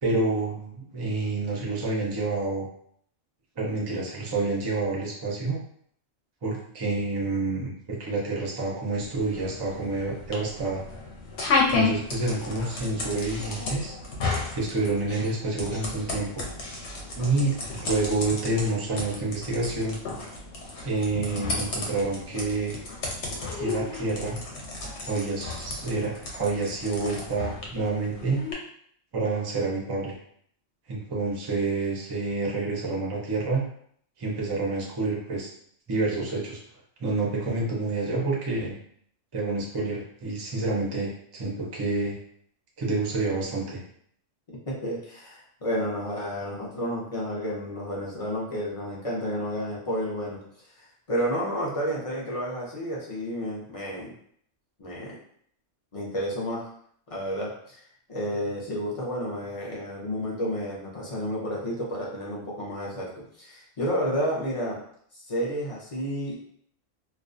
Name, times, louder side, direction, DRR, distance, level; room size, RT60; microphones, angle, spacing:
voice 1, 0.0-2.7 3.6-5.6 6.4-10.8 11.7-13.9 14.5-16.4 17.2-20.0 20.8-22.7 23.6-24.4 25.0-28.4 29.1-30.2 30.9-33.6 34.2-35.5 35.9-36.6 37.0-38.8 39.3-42.2 42.8-43.8, right 3 dB, 40° right, -3 dB, 0.3 m, -28 dB
sound 1, 9.0-28.5, left 3 dB, 70° left, 0.8 m, -33 dB
voice 2, 44.7-50.4 51.1-54.1 54.8-55.2 55.9-56.6 57.1-57.8 58.1-63.1 63.4-64.8 65.3-66.4, equal, 50° left, -4 dB, 0.4 m, -31 dB
2.3 x 2.2 x 2.5 m, 0.64 s
omnidirectional pair, 1.3 m